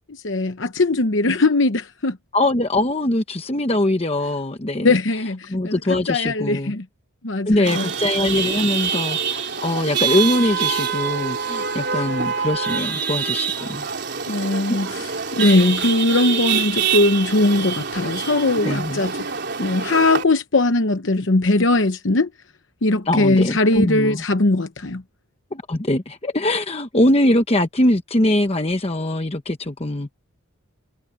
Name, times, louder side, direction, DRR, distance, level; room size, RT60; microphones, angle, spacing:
voice 1, 0.1-2.2 4.8-5.8 6.1-6.8 7.2-7.9 11.9-12.0 14.3-19.1 19.6-22.3 22.8-25.0, left 2 dB, 60° left, 0.9 m, -20 dB
voice 2, 2.3-4.9 5.5-6.7 7.5-13.9 14.7-14.9 18.6-19.0 23.1-24.2 25.5-30.1, left 1 dB, 30° left, 1.0 m, -22 dB
Chatter / Vehicle horn car horn honking / Traffic noise roadway noise, 7.6-20.2, right 6 dB, 50° right, 4.2 m, -25 dB
head